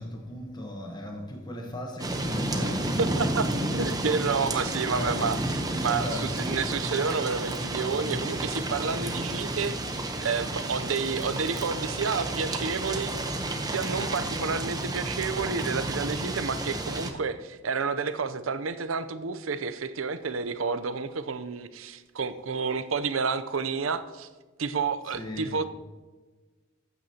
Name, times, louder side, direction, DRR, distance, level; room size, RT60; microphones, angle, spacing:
voice 1, 0.0-2.9 4.9-5.2 5.7-6.2 25.2-25.6, left 1 dB, 20° left, 1.1 m, -37 dB
sound 1, 2.0-17.1, right 1 dB, 20° right, 0.9 m, -31 dB
voice 2, 3.0-3.4 3.7-9.7 10.2-13.1 13.7-24.3 24.6-25.6, right 5 dB, 90° right, 0.6 m, -30 dB
Bowed string instrument, 11.1-15.4, left 3 dB, 55° left, 2.5 m, -50 dB
14.0 x 9.4 x 2.9 m
head